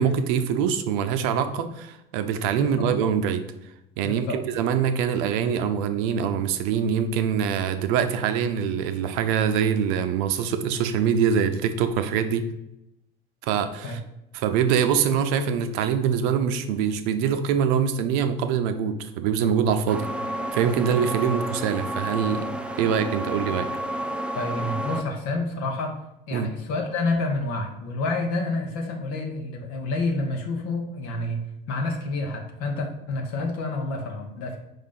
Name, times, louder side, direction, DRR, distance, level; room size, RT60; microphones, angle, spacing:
voice 1, 0.0-3.4 4.0-12.5 13.4-14.0 14.3-20.1 20.5-22.5 22.8-23.7 26.3-26.5, right 7 dB, 55° right, 9 dB, 0.7 m, -24 dB
voice 2, 2.6-2.9 4.0-4.4 13.8-14.0 24.3-26.0 26.3-34.6, left 2 dB, 50° left, 2 dB, 1.2 m, -29 dB
sound 1, 19.9-25.0, right 1 dB, 5° right, 0.5 m, -31 dB
5.4 x 3.6 x 5.7 m, 0.87 s
figure-of-eight pair, 65°, 29 cm